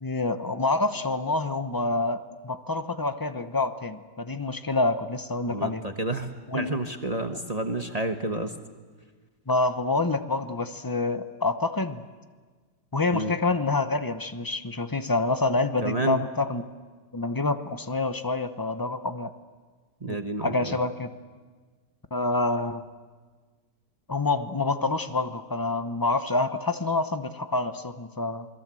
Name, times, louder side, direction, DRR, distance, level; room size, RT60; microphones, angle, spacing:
voice 1, 0.0-5.8 6.5-6.7 9.5-12.0 12.9-16.6 17.1-19.3 20.1-21.1 22.1-22.8 24.1-28.5, left 3 dB, 20° left, 10 dB, 0.6 m, -27 dB
voice 2, 5.5-8.5 13.1-13.3 15.8-16.2 20.0-20.8, right 2 dB, 25° right, 5 dB, 1.1 m, -30 dB
28.0 x 21.5 x 7.7 m, 1.4 s
omnidirectional pair, 1.8 m